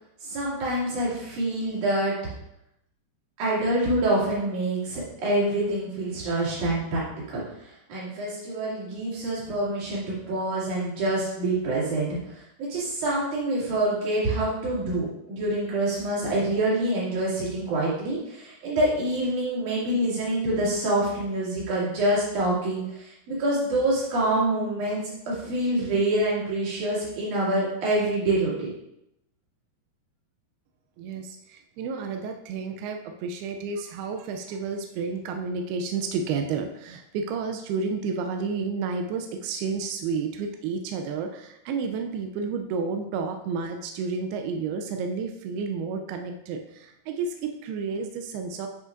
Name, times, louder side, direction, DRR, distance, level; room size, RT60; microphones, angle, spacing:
voice 1, 0.2-2.3 3.4-7.0 7.3-28.7, right 1 dB, 50° right, -7 dB, 3.3 m, -26 dB
voice 2, 31.0-48.7, right 5 dB, 90° right, 4 dB, 2.2 m, -31 dB
10.5 x 5.0 x 2.5 m, 0.82 s
omnidirectional pair, 5.1 m